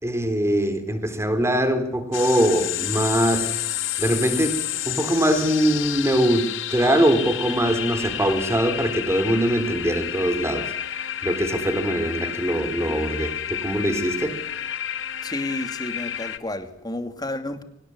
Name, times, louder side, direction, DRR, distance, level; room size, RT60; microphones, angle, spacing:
voice 1, 0.0-3.6 4.0-10.7 11.2-14.4, right 1 dB, 15° right, 4.0 m, -22 dB
sound 1, 2.1-16.4, left 11 dB, 80° left, 1.7 m, -30 dB
voice 2, 15.2-17.6, left 2 dB, 20° left, 2.7 m, -31 dB
25.0 x 19.0 x 9.8 m
head